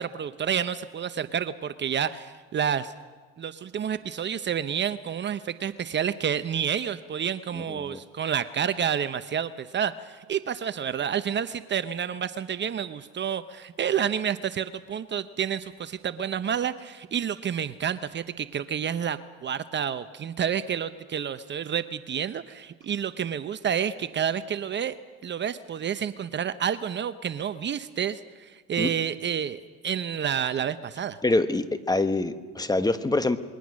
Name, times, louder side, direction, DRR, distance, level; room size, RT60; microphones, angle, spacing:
voice 1, 0.0-2.9 3.4-24.9 25.2-31.2, right 8 dB, 35° right, 12 dB, 0.9 m, -29 dB
voice 2, 7.5-8.0 28.8-28.9 31.2-33.4, left 2 dB, 10° left, 10 dB, 1.4 m, -25 dB
27.5 x 22.0 x 6.4 m, 1.4 s
supercardioid pair, 90°, 31 cm